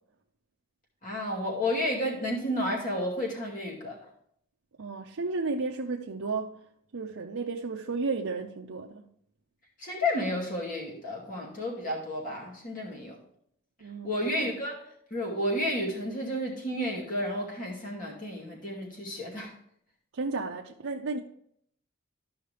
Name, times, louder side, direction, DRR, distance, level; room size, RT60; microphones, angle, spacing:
voice 1, 1.0-4.0 9.8-13.2 14.0-14.8 15.1-19.5, left 1 dB, 40° left, 2.4 m, -31 dB
voice 2, 4.8-6.5 6.9-9.1 13.8-14.1 20.1-21.2, right 3 dB, 75° right, 0.6 m, -33 dB
13.0 x 5.6 x 3.4 m
head